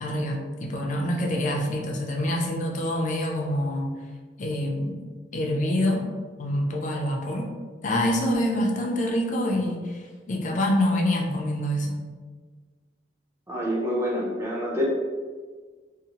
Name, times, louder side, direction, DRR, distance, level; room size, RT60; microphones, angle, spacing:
voice 1, 0.0-3.9 4.4-5.0 5.3-6.1 6.4-7.5 7.8-10.0 10.3-12.0, left 1 dB, 45° left, 1 dB, 0.4 m, -26 dB
voice 2, 13.5-14.8, equal, 15° right, -4 dB, 0.6 m, -27 dB
2.7 x 2.0 x 2.8 m, 1.4 s
head